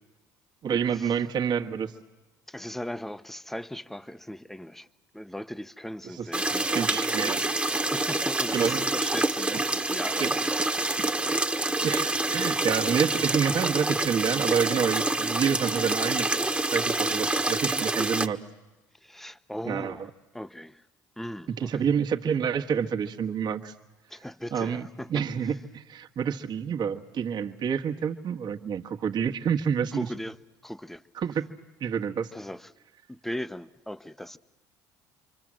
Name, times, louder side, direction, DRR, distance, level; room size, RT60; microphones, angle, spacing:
voice 1, 0.6-1.9 6.1-6.3 6.7-7.4 8.5-8.8 10.2-10.3 11.0-11.1 11.8-16.3 16.7-18.4 19.6-20.0 21.6-23.7 24.5-24.8 25.1-30.1 31.1-31.5 31.8-32.3, right 7 dB, 50° right, 1.7 m, -28 dB
voice 2, 2.5-4.9 5.1-7.3 7.7-10.6 19.0-20.8 21.2-21.8 24.1-25.2 29.9-30.4 30.6-31.0 32.3-32.7 33.1-34.4, left 1 dB, 5° left, 1.0 m, -38 dB
sound 1, 6.3-18.3, right 2 dB, 15° right, 1.4 m, -27 dB
28.0 x 24.5 x 7.7 m
hypercardioid pair, 70°, 9 cm